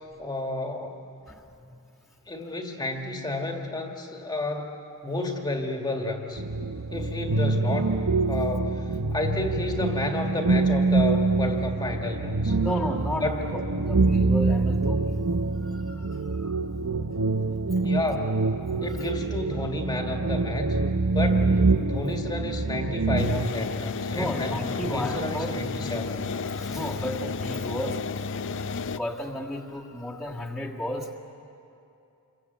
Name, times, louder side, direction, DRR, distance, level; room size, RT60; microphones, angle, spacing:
voice 1, 0.2-1.0 2.3-4.7 5.0-6.4 6.9-8.0 8.3-12.6 13.2-13.4 17.8-18.3 18.8-20.8 21.1-21.5 21.8-26.3, left 2 dB, 20° left, 2 dB, 1.8 m, -31 dB
voice 2, 1.3-1.8 2.5-2.6 12.6-15.2 15.6-16.6 18.7-19.1 21.7-21.8 24.1-25.5 26.4-28.1 28.9-31.2, equal, ahead, -5 dB, 1.7 m, -33 dB
sound 1, 6.4-23.5, right 3 dB, 90° right, 0.8 m, -25 dB
sound 2, 23.2-29.0, left 4 dB, 60° left, 0.6 m, -32 dB
28.0 x 23.5 x 8.1 m, 2.7 s
head